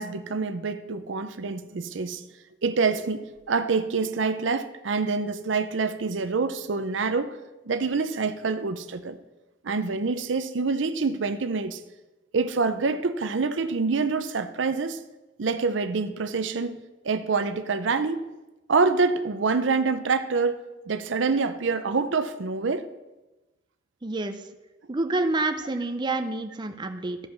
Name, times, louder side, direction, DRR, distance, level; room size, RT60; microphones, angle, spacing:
voice 1, 0.0-2.2 2.6-7.4 7.7-9.2 9.6-11.8 12.3-15.0 15.4-16.8 17.0-18.2 18.7-20.6 20.9-22.9, right 4 dB, 75° right, 11 dB, 0.6 m, -26 dB
voice 2, 24.0-24.4 24.9-27.2, right 2 dB, 25° right, 6 dB, 0.6 m, -28 dB
13.0 x 5.3 x 5.9 m, 1.1 s
head